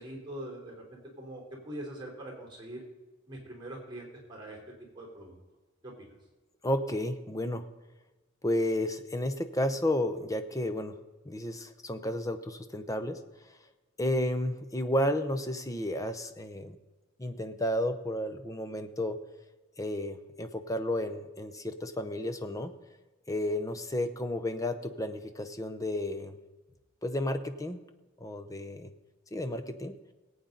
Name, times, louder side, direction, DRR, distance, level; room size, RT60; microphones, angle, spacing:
voice 1, 0.0-2.8 3.3-4.6 4.9-5.3 5.8-6.1, right 1 dB, 20° right, -1 dB, 3.6 m, -43 dB
voice 2, 6.6-7.6 8.4-10.9 11.3-13.2 14.0-16.8 17.2-19.2 19.8-22.7 23.3-26.4 27.0-27.8 28.2-28.9 29.3-30.0, left 1 dB, 15° left, 8 dB, 0.8 m, -32 dB
19.0 x 8.7 x 3.9 m, 1.2 s
head